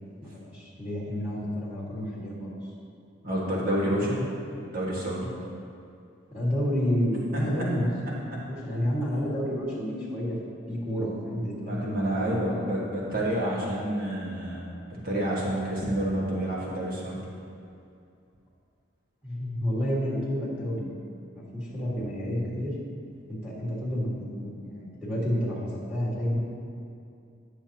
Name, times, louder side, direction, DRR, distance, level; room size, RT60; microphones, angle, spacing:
voice 1, 0.2-2.6 6.3-8.1 8.4-10.4 10.7-12.4 19.2-20.9 21.3-22.7 23.3-26.4, equal, 10° right, -9 dB, 1.9 m, -30 dB
voice 2, 3.2-4.2 4.6-5.3 7.3-7.4 11.6-17.2, right 1 dB, 45° right, -5 dB, 1.6 m, -29 dB
10.5 x 6.8 x 2.9 m, 2.5 s
head